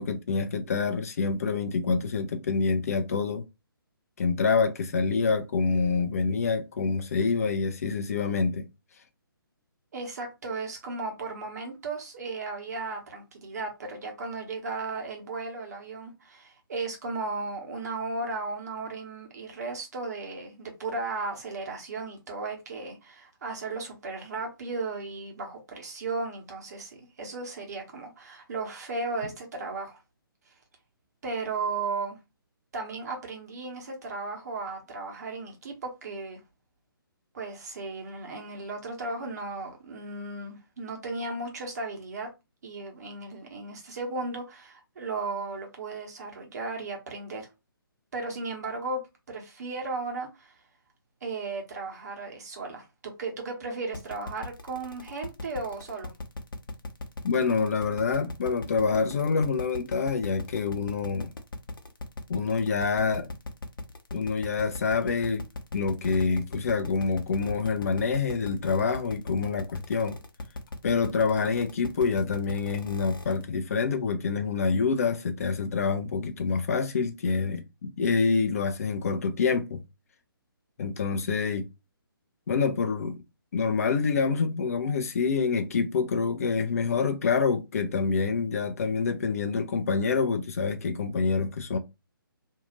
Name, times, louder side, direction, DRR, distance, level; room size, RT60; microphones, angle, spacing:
voice 1, 0.0-3.4 4.2-8.7 57.2-61.3 62.3-63.3 64.1-65.4 65.7-70.2 70.8-79.8 80.8-81.7 82.5-83.2 83.5-91.8, left 5 dB, 40° left, 0.4 m, -27 dB
voice 2, 9.9-30.0 31.2-32.2 32.7-36.4 37.3-42.3 42.6-47.5 48.1-50.5 51.2-56.1, right 3 dB, 45° right, 1.1 m, -35 dB
sound 1, 53.9-73.4, left 2 dB, 65° left, 0.8 m, -38 dB
2.7 x 2.4 x 2.9 m
figure-of-eight pair, 135°, 12 cm